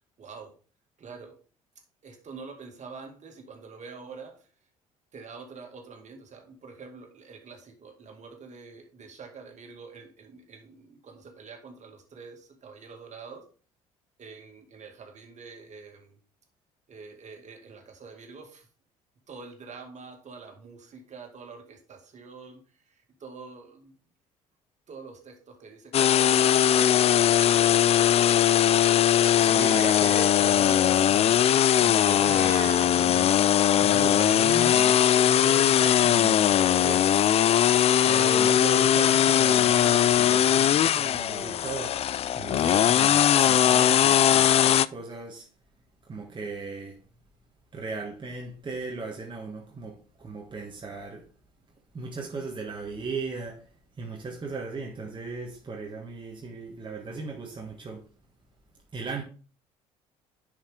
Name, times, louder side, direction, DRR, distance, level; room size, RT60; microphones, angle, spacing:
voice 1, 0.2-0.6 1.0-1.4 2.0-4.5 5.1-13.5 14.2-16.2 16.9-18.7 19.3-23.9 24.9-27.9, right 4 dB, 40° right, 2.2 m, -46 dB
sound 1, 25.9-44.9, left 10 dB, 35° left, 0.3 m, -20 dB
voice 2, 29.4-33.4 33.8-37.4 38.0-42.0 42.3-45.5 46.0-47.0 47.7-51.3 51.9-58.0 58.9-59.2, right 3 dB, 25° right, 1.4 m, -37 dB
Meow, 32.0-32.9, right 6 dB, 65° right, 1.5 m, -38 dB
10.5 x 5.0 x 3.6 m
figure-of-eight pair, 55°, 18 cm